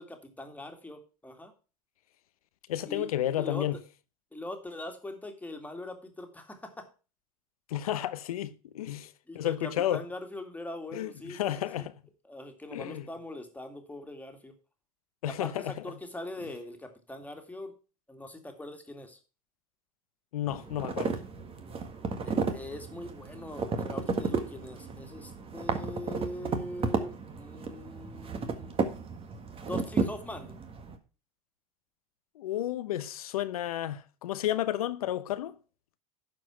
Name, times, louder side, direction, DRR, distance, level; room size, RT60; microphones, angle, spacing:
voice 1, 0.0-1.5 2.9-3.1 3.4-3.7 4.3-6.9 9.3-11.9 12.3-14.5 15.2-17.8 18.1-19.2 22.2-28.8 29.7-30.6, left 1 dB, 10° left, 2.3 m, -42 dB
voice 2, 2.7-3.8 7.7-10.0 10.9-11.9 12.7-13.1 15.2-15.7 20.3-21.2 32.4-35.6, left 12 dB, 85° left, 0.8 m, -32 dB
sound 1, 20.5-30.9, right 4 dB, 30° right, 1.7 m, -33 dB
11.5 x 4.9 x 5.9 m
hypercardioid pair, 90°, 18 cm